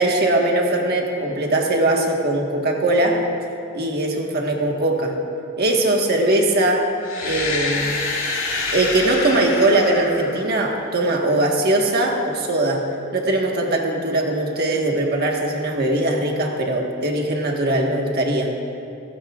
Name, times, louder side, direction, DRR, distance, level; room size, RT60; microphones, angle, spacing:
voice 1, 0.0-3.2 3.7-5.2 5.6-6.9 7.2-8.0 8.7-18.6, right 1 dB, 45° right, 0 dB, 1.5 m, -20 dB
sound 1, 7.0-10.9, left 3 dB, 70° left, 2.3 m, -27 dB
17.0 x 15.5 x 2.4 m, 2.7 s
head